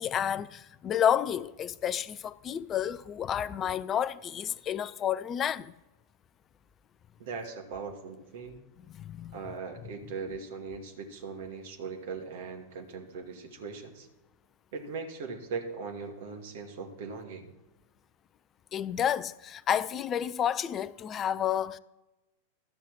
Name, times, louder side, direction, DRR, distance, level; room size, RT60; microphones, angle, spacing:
voice 1, 0.0-5.7 8.9-9.4 18.7-21.8, left 9 dB, 25° left, 0.4 m, -30 dB
voice 2, 7.2-8.6 9.3-14.1 14.7-17.5, right 5 dB, 55° right, 2.1 m, -39 dB
12.5 x 5.5 x 7.5 m
figure-of-eight pair, 90°, 0 cm